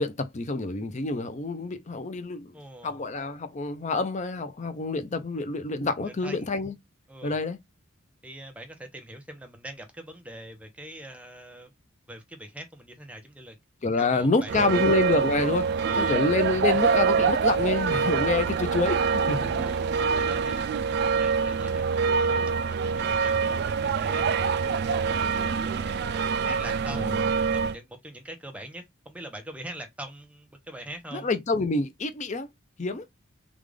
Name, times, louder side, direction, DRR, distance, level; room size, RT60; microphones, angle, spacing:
voice 1, 0.0-2.6 2.8-6.7 7.2-7.6 13.8-19.6 26.9-27.2 31.1-32.5 32.8-33.1, left 3 dB, 35° left, 0.5 m, -27 dB
voice 2, 2.5-3.0 6.0-6.5 7.1-7.4 8.2-11.7 12.1-13.6 14.0-14.7 15.8-16.3 19.6-26.0 26.4-31.3, right 1 dB, 5° right, 0.7 m, -43 dB
sound 1, 14.5-27.8, right 5 dB, 50° right, 0.3 m, -25 dB
3.6 x 2.4 x 3.3 m
head